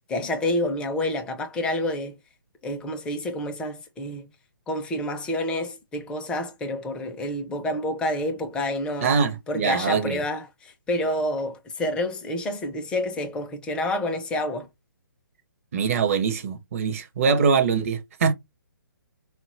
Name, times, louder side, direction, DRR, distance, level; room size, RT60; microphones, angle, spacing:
voice 1, 0.1-2.2 2.6-4.3 4.7-9.2 9.5-14.7, left 1 dB, 10° left, 0.4 m, -28 dB
voice 2, 9.0-10.2 15.7-18.3, right 5 dB, 40° right, 0.6 m, -23 dB
3.9 x 2.2 x 2.4 m
figure-of-eight pair, 135°, 11 cm